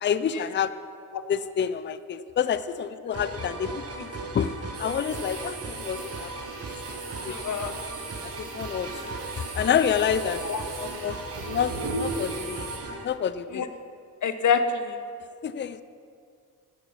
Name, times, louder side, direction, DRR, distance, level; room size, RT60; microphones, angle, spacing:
voice 1, 0.0-0.7 1.3-4.5 4.8-6.3 7.3-7.4 8.4-10.4 10.8-11.7 12.0-12.7 13.0-13.6 15.4-15.8, left 8 dB, 30° left, 14 dB, 0.4 m, -28 dB
sound 1, 3.1-13.0, right 2 dB, 40° right, 1.4 m, -37 dB
sound 2, 4.7-12.8, right 3 dB, 85° right, 1.9 m, -38 dB
voice 2, 7.3-7.8 10.4-10.6 13.5-13.7 14.2-15.0, left 6 dB, 55° left, 9 dB, 0.9 m, -26 dB
10.5 x 7.9 x 5.8 m, 2.3 s
cardioid pair, 65°, 37 cm